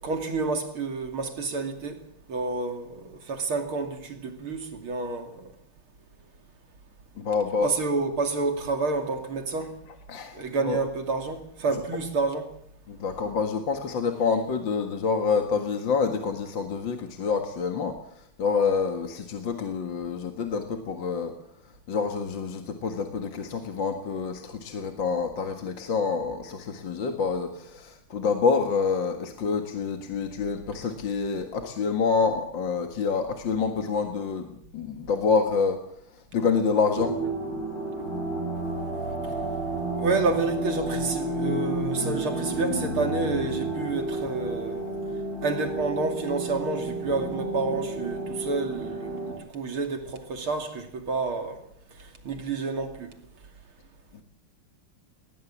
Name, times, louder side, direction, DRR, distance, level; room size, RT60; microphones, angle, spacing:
voice 1, 0.0-2.0 2.3-5.5 7.6-9.7 10.3-12.4 40.0-45.0 45.4-51.6 52.2-53.1, right 3 dB, 75° right, 3.5 m, -29 dB
voice 2, 7.2-7.7 10.1-10.4 10.6-10.8 11.7-11.8 12.9-21.3 21.9-35.8 36.3-37.2, left 5 dB, 60° left, 2.4 m, -27 dB
sound 1, 36.9-49.3, right 2 dB, 40° left, 8.5 m, -31 dB
20.0 x 20.0 x 7.4 m
omnidirectional pair, 2.4 m